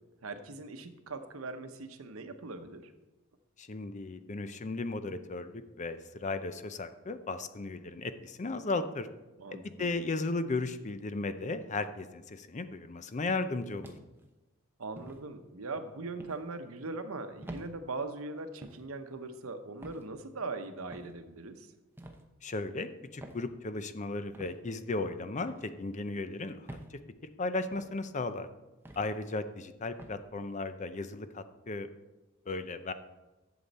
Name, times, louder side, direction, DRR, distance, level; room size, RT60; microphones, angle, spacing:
voice 1, 0.2-2.9 9.4-10.0 14.8-21.7, right 3 dB, 85° right, 8 dB, 0.9 m, -40 dB
voice 2, 3.6-9.1 9.5-13.9 22.4-27.0 27.4-28.5 29.0-31.9 32.5-32.9, left 3 dB, 35° left, 11 dB, 0.5 m, -35 dB
sound 1, 13.8-14.3 15.0-15.2 16.2-16.4 17.4-17.7 18.6-18.9 19.8-20.1 20.9-21.2 22.0-22.2 23.2-23.4 24.3-24.5 25.5-25.7 26.7-26.9 27.7-27.9 28.8-29.1 30.0-30.2, right 1 dB, 10° right, 0.8 m, -47 dB
11.5 x 7.1 x 4.1 m, 1.1 s
head